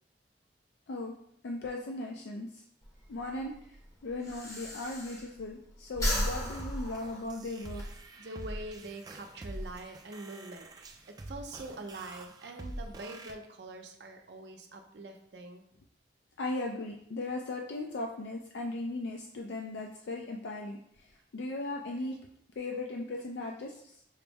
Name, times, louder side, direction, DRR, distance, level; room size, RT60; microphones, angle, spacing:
voice 1, 1.4-2.6 3.1-3.5 4.0-7.8 16.4-22.2 22.6-23.9, left 2 dB, 85° left, 1 dB, 0.4 m, -37 dB
Breathing, 2.8-5.6 5.9-7.9, equal, 20° left, 0.6 m, -35 dB
sound 1, 6.0-13.3, right 1 dB, 20° right, 0.3 m, -44 dB
voice 2, 8.2-11.0 11.3-15.6, right 2 dB, 70° right, 4 dB, 0.6 m, -44 dB
5.5 x 2.0 x 3.4 m, 0.70 s
head